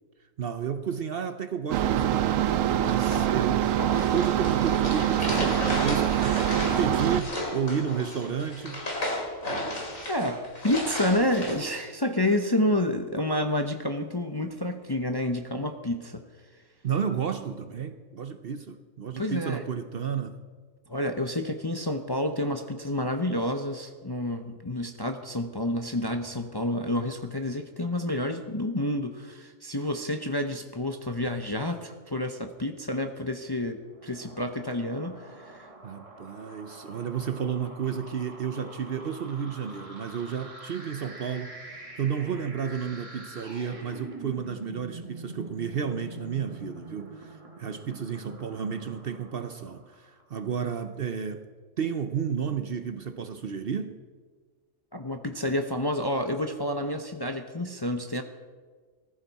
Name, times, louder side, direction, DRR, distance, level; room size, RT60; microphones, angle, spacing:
voice 1, 0.4-3.7 4.1-8.8 16.8-20.4 35.8-41.6 42.0-51.5 51.8-54.0, right 7 dB, 55° right, 0.8 m, -32 dB
sound 1, 1.7-7.2, right 11 dB, 80° right, 1.0 m, -25 dB
sound 2, 2.9-11.5, left 1 dB, 80° left, 3.9 m, -34 dB
voice 2, 10.1-16.2 19.2-19.6 20.9-35.7 54.9-58.2, left 1 dB, 25° left, 0.7 m, -29 dB
sound 3, 33.9-50.2, right 2 dB, 25° right, 2.1 m, -45 dB
19.5 x 14.0 x 4.1 m
omnidirectional pair, 1.4 m